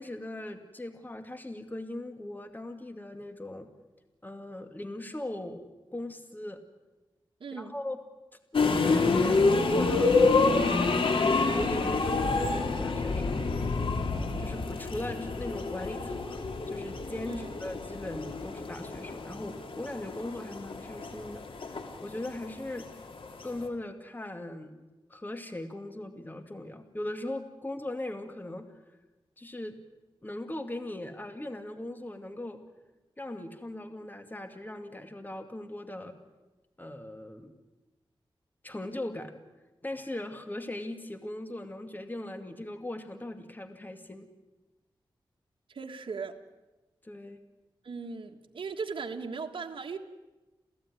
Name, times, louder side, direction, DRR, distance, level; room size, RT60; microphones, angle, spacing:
voice 1, 0.0-3.7 4.2-6.6 7.5-8.0 8.5-13.5 14.4-22.9 23.4-24.8 25.1-28.7 29.4-29.7 30.2-32.6 33.2-36.2 36.8-37.6 38.6-39.3 39.8-44.3 47.0-47.4, left 1 dB, 20° left, 7 dB, 2.3 m, -39 dB
voice 2, 7.4-7.7 17.3-17.5 45.7-46.4 47.8-50.0, right 5 dB, 75° right, 3 dB, 1.6 m, -38 dB
sound 1, 8.5-23.6, left 3 dB, 80° left, 2.6 m, -28 dB
28.5 x 16.0 x 9.7 m, 1.1 s
wide cardioid pair, 80°, 9 cm